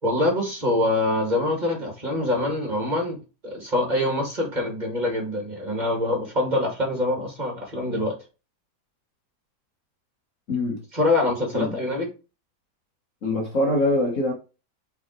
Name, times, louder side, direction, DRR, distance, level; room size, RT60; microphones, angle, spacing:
voice 1, 0.0-8.2 10.9-12.1, left 1 dB, 25° right, 2.2 m, -25 dB
voice 2, 10.5-10.8 11.5-11.8 13.2-14.3, left 1 dB, 50° left, 1.6 m, -23 dB
5.8 x 4.1 x 4.5 m
omnidirectional pair, 1.8 m